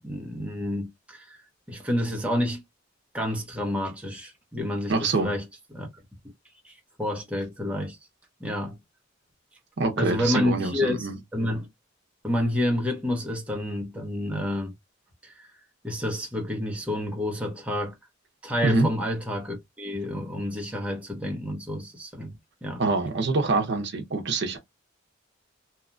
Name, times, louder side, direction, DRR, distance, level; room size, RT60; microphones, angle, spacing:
voice 1, 0.0-1.4 1.7-2.6 3.1-5.4 5.7-5.9 6.6-6.7 7.0-8.0 8.4-8.7 10.0-11.1 11.3-11.7 12.2-14.7 15.2-15.5 15.8-17.9 18.4-22.4 22.6-22.8, left 1 dB, 5° right, 0.7 m, -29 dB
voice 2, 4.9-5.3 9.8-11.2 18.6-18.9 22.8-24.6, right 3 dB, 60° right, 0.7 m, -25 dB
2.8 x 2.2 x 2.5 m
head